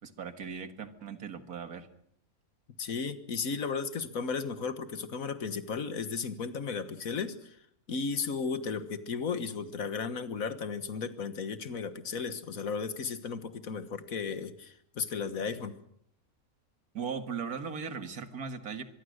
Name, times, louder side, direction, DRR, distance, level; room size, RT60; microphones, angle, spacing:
voice 1, 0.0-1.9 16.9-18.8, right 6 dB, 90° right, 9 dB, 2.2 m, -38 dB
voice 2, 2.8-7.6 7.9-15.8, left 5 dB, 70° left, 12 dB, 1.8 m, -35 dB
24.0 x 22.5 x 6.5 m, 0.71 s
omnidirectional pair, 1.5 m